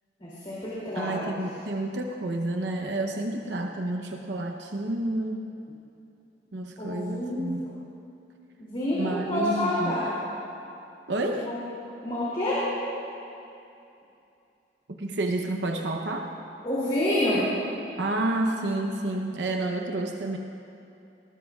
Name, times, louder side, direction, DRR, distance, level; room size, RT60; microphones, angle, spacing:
voice 1, 0.2-1.4 6.8-7.5 8.6-10.1 11.4-11.6 12.0-12.6 16.6-17.4, left 1 dB, 30° left, -9 dB, 2.9 m, -28 dB
voice 2, 0.9-5.5 6.5-7.6 8.9-10.0 11.1-11.5 15.0-16.3 18.0-20.4, right 2 dB, 85° right, 3 dB, 0.8 m, -30 dB
19.5 x 18.5 x 2.4 m, 2.7 s
head